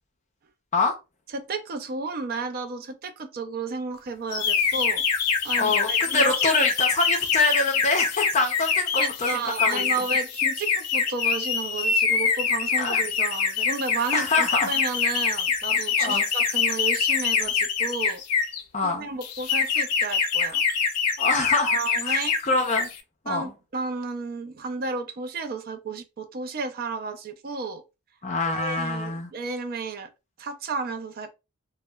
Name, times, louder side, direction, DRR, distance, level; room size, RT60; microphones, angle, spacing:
voice 1, 1.3-5.0 5.4-6.5 9.0-18.2 18.8-20.6 21.7-22.4 23.3-27.8 28.5-30.1 30.4-31.3, right 4 dB, 40° right, 0.4 m, -32 dB
sound 1, 4.3-18.6 19.2-22.4 22.7-23.0, left 6 dB, 90° left, 0.4 m, -25 dB
voice 2, 5.6-9.8 12.8-13.0 14.1-14.7 16.0-16.3 18.7-19.1 21.2-21.8 22.0-22.9 23.2-23.5 28.2-29.3, left 3 dB, 30° left, 0.5 m, -25 dB
2.8 x 2.0 x 2.2 m
head